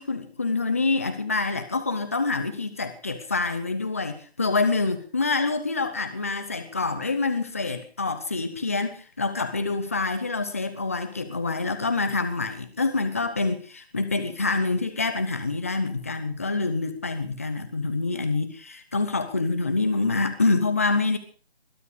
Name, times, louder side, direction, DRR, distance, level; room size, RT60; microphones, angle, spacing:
voice 1, 0.0-21.2, left 3 dB, 15° left, 9 dB, 0.8 m, -26 dB
21.5 x 12.0 x 5.0 m, 0.39 s
figure-of-eight pair, 170°, 31 cm